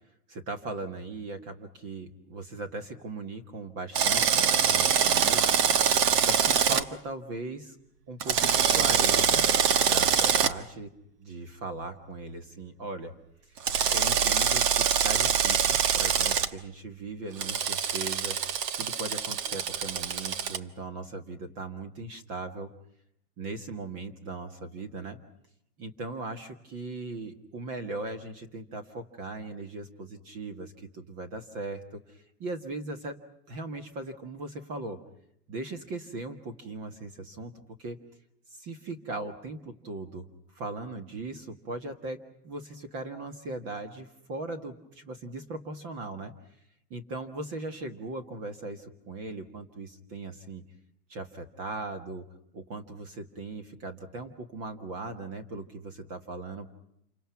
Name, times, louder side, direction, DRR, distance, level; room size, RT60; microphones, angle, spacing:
voice 1, 0.3-5.6 6.2-7.8 8.1-9.5 9.8-10.9 11.2-13.1 13.9-18.4 18.8-22.7 23.4-25.2 25.8-33.2 33.5-35.0 35.5-37.5 37.8-38.0 38.5-40.3 40.5-46.3 46.9-50.6 51.1-52.2 52.5-56.7, right 2 dB, 30° right, 7 dB, 1.7 m, -39 dB
Drill, 3.9-6.8 8.2-10.5 13.6-16.5 17.4-20.6, right 7 dB, 75° right, 1.5 m, -24 dB
28.0 x 25.5 x 5.9 m, 0.74 s
supercardioid pair, 160°, 48 cm